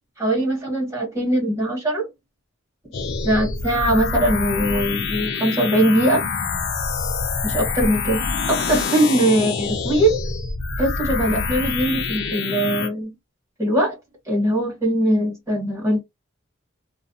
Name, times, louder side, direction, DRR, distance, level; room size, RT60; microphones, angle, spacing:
voice 1, 0.2-2.1 3.2-6.2 7.4-10.2 10.8-13.1 13.6-13.9 14.3-16.0, right 1 dB, 15° right, 1.2 m, -21 dB
sound 1, 2.9-12.9, left 4 dB, 55° left, 0.5 m, -26 dB
2.4 x 2.0 x 2.7 m
head